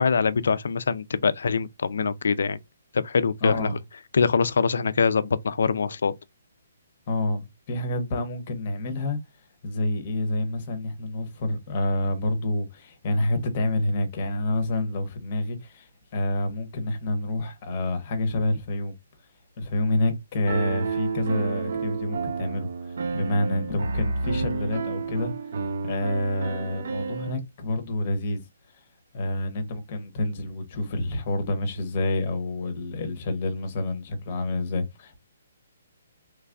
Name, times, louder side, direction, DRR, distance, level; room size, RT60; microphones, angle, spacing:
voice 1, 0.0-2.6 2.9-3.7 4.1-6.1, left 5 dB, 65° left, 0.4 m, -23 dB
voice 2, 3.4-3.8 7.1-9.2 9.6-18.9 19.6-28.4 29.1-35.2, left 1 dB, 25° left, 0.7 m, -28 dB
Piano, 20.5-27.3, right 4 dB, 50° right, 0.5 m, -30 dB
3.1 x 2.3 x 3.6 m
hypercardioid pair, 175°, 0 cm